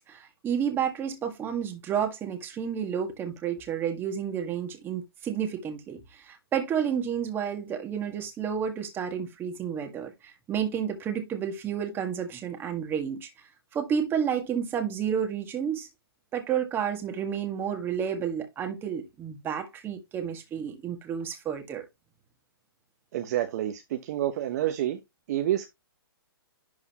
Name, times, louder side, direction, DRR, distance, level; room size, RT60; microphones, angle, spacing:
voice 1, 0.1-13.3 13.7-15.9 16.3-21.8, right 8 dB, 15° right, 1.7 m, -31 dB
voice 2, 23.1-25.0 25.3-25.7, right 12 dB, 45° right, 1.0 m, -28 dB
11.0 x 3.9 x 3.0 m
hypercardioid pair, 135°, 13 cm